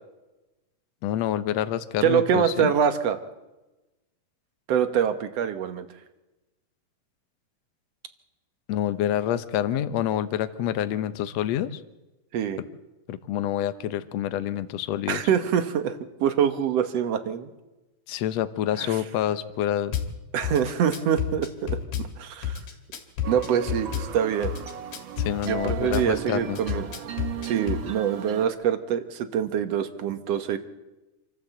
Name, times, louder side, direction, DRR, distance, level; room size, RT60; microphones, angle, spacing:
voice 1, 1.0-2.7 8.7-11.7 13.1-15.2 18.1-19.9 25.2-26.6, left 11 dB, 70° left, 12 dB, 1.8 m, -27 dB
voice 2, 2.0-3.2 4.7-5.9 12.3-12.6 15.1-17.5 18.8-19.0 20.3-22.6 23.3-24.5 25.4-26.9 27.4-30.6, right 8 dB, 60° right, 10 dB, 1.9 m, -25 dB
Drum kit / Bass drum, 19.9-20.1 20.4-22.1 22.4-24.1 24.4-26.1 26.6-27.8, left 9 dB, 85° left, 3.7 m, -30 dB
sound 1, 23.2-28.5, right 10 dB, 80° right, 1.1 m, -37 dB
27.0 x 13.0 x 8.0 m, 1.1 s
omnidirectional pair, 3.8 m